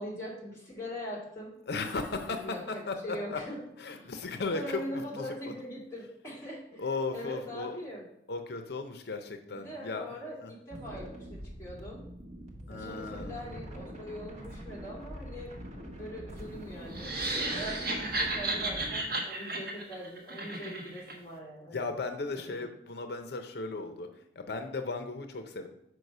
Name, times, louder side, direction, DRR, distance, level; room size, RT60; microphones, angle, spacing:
voice 1, 0.0-1.5 2.2-3.6 3.9-4.1 4.5-6.9 7.1-8.1 9.5-12.0 12.7-15.5 15.8-17.1 17.5-21.9, equal, 15° left, -4 dB, 2.3 m, -42 dB
voice 2, 1.7-3.4 3.8-5.2 6.8-7.8 8.3-10.1 10.4-10.5 12.7-13.4 21.7-24.1 24.4-25.7, left 3 dB, 65° left, 6 dB, 0.6 m, -36 dB
sound 1, 10.7-19.0, equal, 40° right, 1.2 m, -44 dB
sound 2, 16.9-21.2, right 2 dB, 60° right, 1.2 m, -33 dB
6.3 x 4.7 x 5.4 m, 0.82 s
head